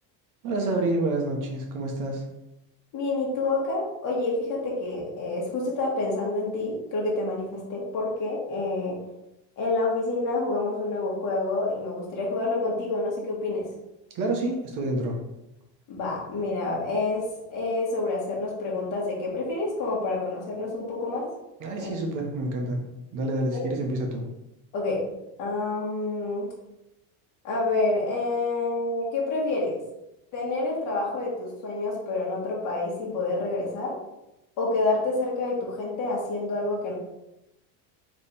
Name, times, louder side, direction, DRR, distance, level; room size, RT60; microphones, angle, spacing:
voice 1, 0.4-2.2 14.1-15.2 21.6-22.8 23.1-24.2, right 2 dB, 45° right, 1 dB, 1.0 m, -28 dB
voice 2, 2.9-9.0 9.6-13.6 15.9-21.3 21.8-22.0 23.5-23.6 24.7-25.0 25.4-26.5 27.4-29.8 30.3-33.9 34.6-36.9, left 2 dB, 50° left, -4 dB, 1.5 m, -28 dB
3.4 x 3.3 x 4.2 m, 0.91 s
cardioid pair, 145°, 42 cm